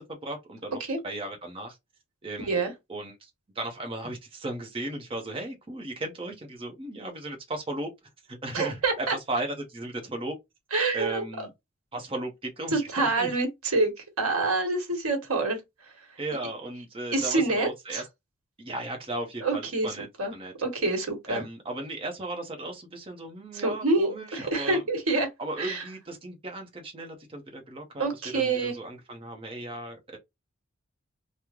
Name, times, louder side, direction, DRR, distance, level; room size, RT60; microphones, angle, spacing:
voice 1, 0.0-1.8 2.2-2.6 2.9-3.3 3.5-7.9 8.3-10.3 10.9-11.5 11.9-13.3 16.2-18.1 18.6-20.1 20.3-20.5 21.3-24.8 25.4-30.2, right 2 dB, 25° right, 0.7 m, -36 dB
voice 2, 8.5-9.1 10.7-11.2 12.7-13.9 14.2-15.6 17.1-18.0 19.4-19.9 20.2-20.3 20.6-21.4 23.6-25.3 25.6-25.8 28.0-28.7, right 3 dB, 90° right, 1.2 m, -26 dB
3.0 x 2.0 x 3.5 m
head